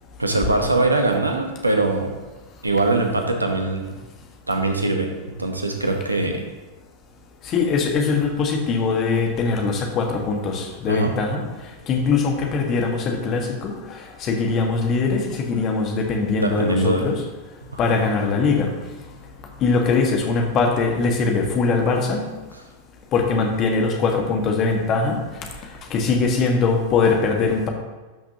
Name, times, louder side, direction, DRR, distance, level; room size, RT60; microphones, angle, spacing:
voice 1, 0.2-2.1 2.6-4.0 4.5-5.1 5.4-6.5 10.9-11.2 16.4-17.1 17.6-18.0, right 2 dB, 80° right, 4 dB, 1.0 m, -22 dB
voice 2, 7.4-11.4 11.9-17.2 17.8-18.7 19.6-22.3 23.1-25.2 25.9-27.7, left 4 dB, 35° left, 2 dB, 1.5 m, -21 dB
12.0 x 5.9 x 2.9 m, 1.2 s
figure-of-eight pair, 90°, 0 cm